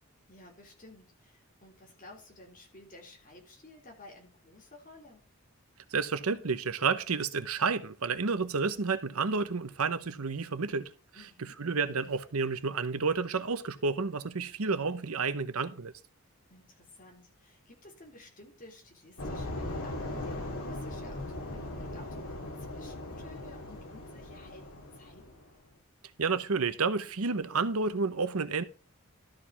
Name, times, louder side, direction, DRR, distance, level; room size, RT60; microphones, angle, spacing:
voice 1, 0.3-5.2 11.1-11.6 16.5-25.4, left 2 dB, 35° left, 3.6 m, -53 dB
voice 2, 5.9-10.9 11.6-15.9 26.2-28.6, right 4 dB, 85° right, 0.9 m, -30 dB
sound 1, 19.2-25.5, left 1 dB, 80° left, 2.1 m, -39 dB
13.0 x 4.9 x 5.7 m
head